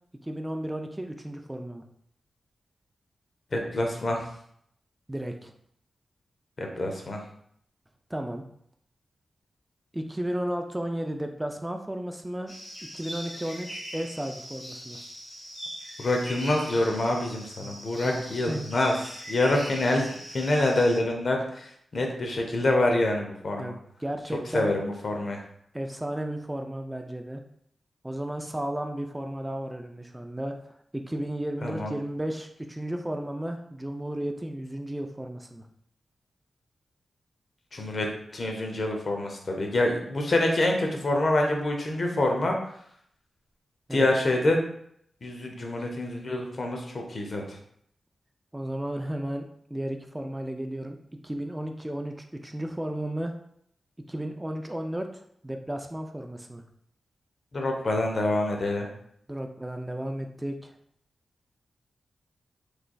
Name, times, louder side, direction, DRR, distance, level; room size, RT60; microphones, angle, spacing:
voice 1, 0.2-1.8 5.1-5.5 8.1-8.4 9.9-12.5 12.9-15.0 17.6-17.8 18.0-18.7 23.6-24.7 25.7-27.4 28.0-30.6 30.9-35.6 43.9-44.1 48.5-51.0 51.2-53.4 54.1-56.6 59.3-60.7, right 1 dB, 15° right, 4 dB, 0.4 m, -34 dB
voice 2, 3.5-4.2 6.6-7.2 16.0-18.9 19.3-23.7 24.5-25.4 31.6-31.9 37.7-42.6 43.9-44.6 45.2-47.6 57.5-58.9, left 1 dB, 55° left, 2 dB, 0.7 m, -26 dB
sound 1, 12.5-21.0, equal, 30° left, 1.2 m, -41 dB
3.6 x 3.2 x 2.3 m, 0.69 s
cardioid pair, 60°, 0 cm